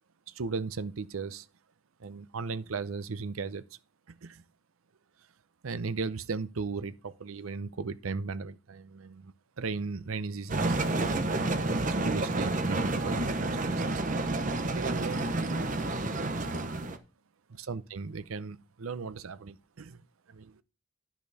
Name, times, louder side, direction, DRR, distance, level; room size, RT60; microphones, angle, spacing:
voice 1, 0.3-1.5 2.0-3.6 4.1-4.4 5.6-11.2 11.8-14.2 14.7-15.3 17.5-20.0 20.3-20.6, right 4 dB, 85° right, 0.6 m, -37 dB
sound 1, 10.5-17.0, right 2 dB, 40° right, 0.9 m, -29 dB
10.5 x 6.0 x 4.1 m
head